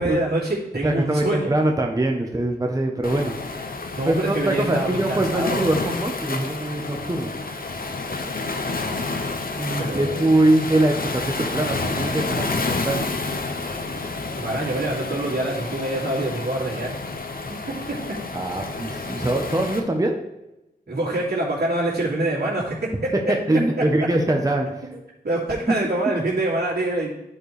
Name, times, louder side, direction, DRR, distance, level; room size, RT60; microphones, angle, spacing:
voice 1, 0.0-1.5 4.0-5.6 9.8-10.3 14.4-16.9 17.7-18.2 20.9-23.1 25.2-27.1, right 1 dB, 80° right, -6 dB, 2.5 m, -25 dB
voice 2, 0.8-3.4 4.1-7.3 9.6-13.1 18.3-20.2 23.1-24.9, right 1 dB, 20° right, 2 dB, 0.9 m, -23 dB
Waves surf, 3.0-19.8, left 3 dB, 60° left, 0.8 m, -29 dB
11.0 x 4.5 x 3.3 m, 0.94 s
wide cardioid pair, 60°, 17 cm